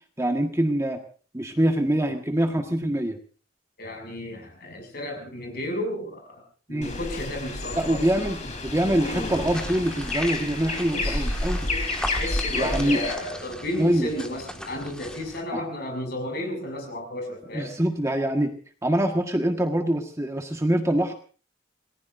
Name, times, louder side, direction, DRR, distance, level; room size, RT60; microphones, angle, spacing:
voice 1, 0.2-1.0 1.3-3.2 6.7-6.9 7.7-11.6 12.5-13.0 13.8-14.1 15.5-15.6 17.5-18.5 18.8-21.1, right 1 dB, 15° right, 4 dB, 1.6 m, -24 dB
voice 2, 3.8-6.4 6.7-8.1 10.9-11.4 11.7-17.7, left 1 dB, 55° left, 3 dB, 6.7 m, -33 dB
sound 1, 6.8-13.1, left 2 dB, 40° left, 3.8 m, -30 dB
sound 2, 9.1-15.4, equal, 5° left, 1.9 m, -39 dB
27.5 x 19.5 x 2.6 m, 0.39 s
head